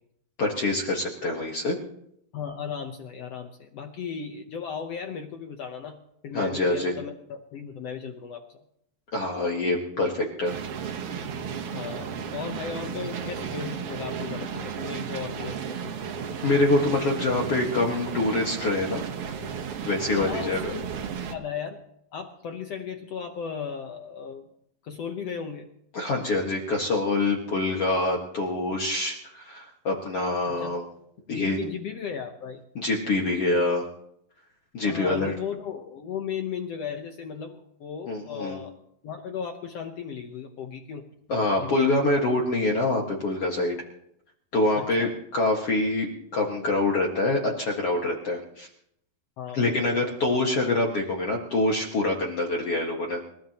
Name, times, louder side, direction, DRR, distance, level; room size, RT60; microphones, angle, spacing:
voice 1, 0.4-1.8 6.3-6.9 9.1-10.5 12.9-13.1 13.5-13.6 16.4-19.0 19.8-20.7 25.9-30.8 31.3-31.6 32.8-33.9 34.7-35.3 38.1-38.6 41.3-43.7 44.5-46.1 46.3-48.7 49.5-53.2, left 2 dB, 50° left, -1 dB, 2.2 m, -25 dB
voice 2, 2.3-8.6 11.7-15.9 19.9-20.9 21.3-21.8 22.1-24.4 24.8-25.7 30.5-30.8 31.3-32.6 34.8-38.7 39.0-41.1 41.6-42.0 44.7-45.1 49.4-50.1, left 7 dB, 80° left, 5 dB, 1.4 m, -36 dB
sound 1, 10.4-21.3, right 7 dB, 70° right, 1.3 m, -34 dB
30.0 x 16.0 x 3.0 m, 0.75 s
omnidirectional pair, 4.3 m